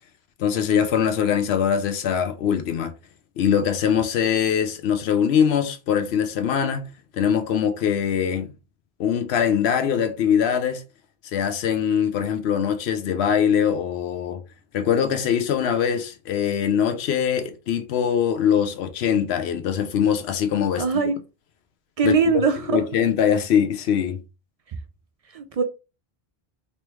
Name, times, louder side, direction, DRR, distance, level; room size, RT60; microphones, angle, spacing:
voice 1, 0.4-2.9 3.4-8.5 9.0-10.8 11.3-14.4 14.7-21.1 22.0-22.4 22.7-24.2, left 8 dB, 90° left, 0.9 m, -22 dB
voice 2, 20.8-21.2 22.0-22.8 25.3-25.6, right 5 dB, 55° right, 0.4 m, -21 dB
3.3 x 3.0 x 3.0 m
omnidirectional pair, 1.0 m